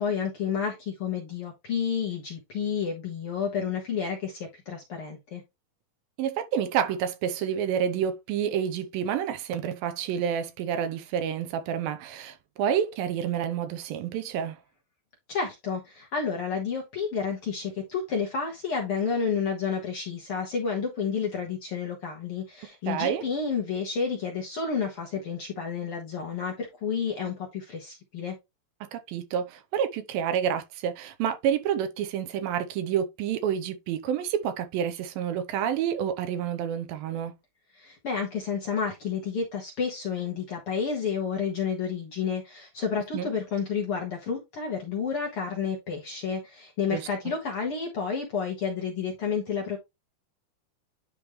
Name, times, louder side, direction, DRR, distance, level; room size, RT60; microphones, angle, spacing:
voice 1, 0.0-5.4 15.3-28.3 37.7-49.8, left 6 dB, 55° left, 1.6 m, -30 dB
voice 2, 6.2-14.6 22.9-23.2 28.8-37.3 43.1-43.3 46.9-47.0, right 8 dB, 85° right, 2.6 m, -29 dB
10.0 x 3.6 x 3.1 m
omnidirectional pair, 4.1 m